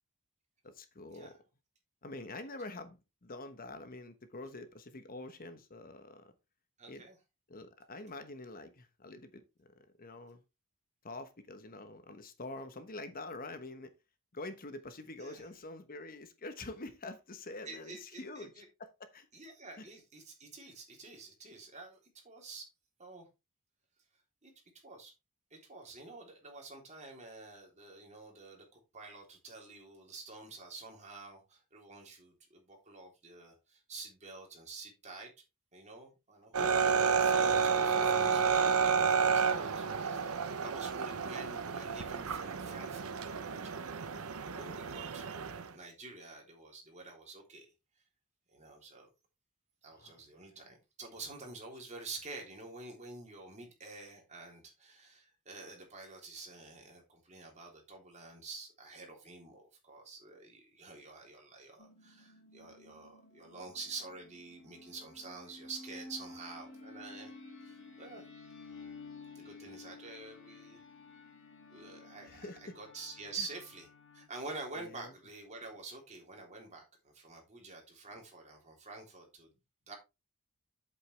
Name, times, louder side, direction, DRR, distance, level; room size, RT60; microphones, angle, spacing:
voice 1, 0.6-1.3 2.0-6.3 6.9-7.0 7.5-10.4 11.0-13.9 14.3-18.5 18.8-19.3 19.8-19.9 50.0-50.2 72.3-72.8 74.8-75.1, left 2 dB, 40° left, 1.1 m, -46 dB
voice 2, 6.8-7.2 15.2-15.5 17.6-18.7 19.3-22.0 22.2-22.7 23.0-23.3 24.4-24.5 24.8-25.1 25.5-35.3 35.7-43.7 44.4-47.7 48.5-49.1 49.8-67.4 67.6-68.2 69.4-70.8 71.7-79.5 79.9-80.0, right 3 dB, 35° right, 3.5 m, -48 dB
sound 1, 36.5-45.7, right 6 dB, 80° right, 0.9 m, -30 dB
sound 2, 61.8-74.3, left 3 dB, 65° left, 3.5 m, -52 dB
8.2 x 8.1 x 3.4 m
head